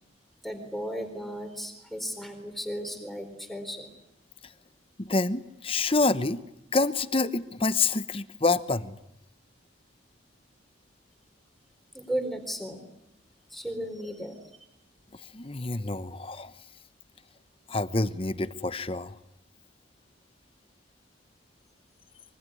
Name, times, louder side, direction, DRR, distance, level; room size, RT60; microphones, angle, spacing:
voice 1, 0.4-3.9 11.9-12.9 13.5-14.3, equal, ahead, 6 dB, 4.1 m, -35 dB
voice 2, 5.0-6.4 6.7-9.0 15.3-16.5 17.7-19.1, left 3 dB, 30° left, 13 dB, 1.0 m, -27 dB
25.0 x 23.5 x 9.8 m, 0.81 s
head